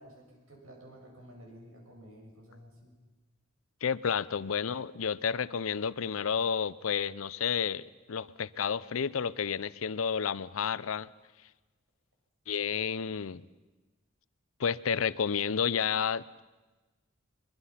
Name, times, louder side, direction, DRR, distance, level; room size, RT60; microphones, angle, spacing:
voice 1, 0.0-2.9, equal, 90° right, 0 dB, 6.4 m, -52 dB
voice 2, 3.8-11.1 12.5-13.4 14.6-16.2, left 7 dB, 80° left, 18 dB, 0.6 m, -31 dB
23.0 x 23.0 x 5.8 m, 1.2 s
head